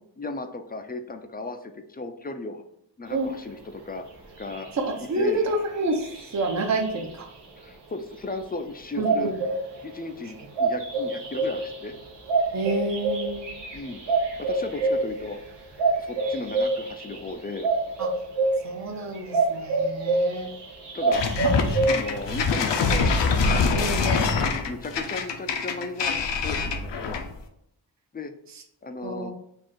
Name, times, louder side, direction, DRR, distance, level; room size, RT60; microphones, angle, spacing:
voice 1, 0.2-2.6 3.0-4.0 4.4-4.7 5.2-5.4 7.6-9.3 9.8-11.9 13.7-14.0 14.4-15.4 16.0-17.7 20.9-21.2 21.9-23.1 24.7-27.2 28.1-28.3 28.8-29.3, left 3 dB, 25° left, 7 dB, 0.3 m, -35 dB
sound 1, 4.1-4.2 4.4-7.5 8.9-22.4, right 3 dB, 85° right, 1.2 m, -27 dB
voice 2, 4.8-7.3 9.0-9.4 12.5-13.5 18.0-18.1 18.6-20.5 23.7-24.3 29.0-29.3, right 2 dB, 45° right, 2 dB, 0.7 m, -28 dB
sound 2, 21.1-27.4, left 4 dB, 90° left, 0.7 m, -24 dB
4.3 x 2.4 x 4.5 m, 0.77 s
wide cardioid pair, 140°, 41 cm